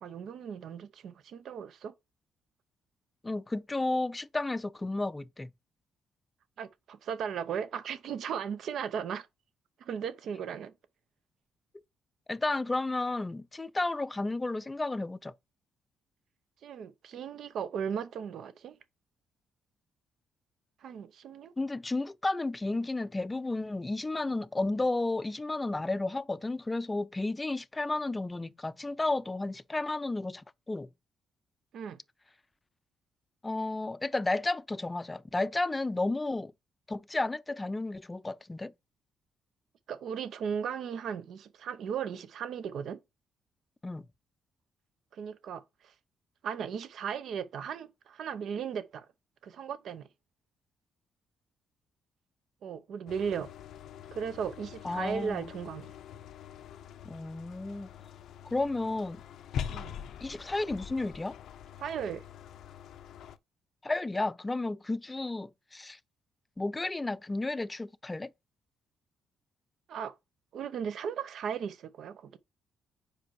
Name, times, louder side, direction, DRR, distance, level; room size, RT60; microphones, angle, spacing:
voice 1, 0.0-1.9 6.6-9.3 9.8-10.7 16.6-18.7 20.8-21.5 31.7-32.0 39.9-43.0 45.1-45.9 46.4-49.1 49.4-50.1 52.6-53.5 54.1-55.9 59.7-59.9 61.8-62.2 69.9-70.1 70.5-72.4, right 7 dB, 70° right, 0.7 m, -36 dB
voice 2, 3.2-5.5 12.3-15.3 21.6-30.9 33.4-36.5 36.9-38.7 43.8-44.1 54.8-55.5 57.0-57.9 58.4-59.2 60.2-61.4 63.8-66.0 66.6-68.3, left 2 dB, 15° left, 0.4 m, -32 dB
sound 1, 53.1-63.4, left 9 dB, 75° left, 0.5 m, -44 dB
4.9 x 4.4 x 4.6 m
cardioid pair, 90°, 0 cm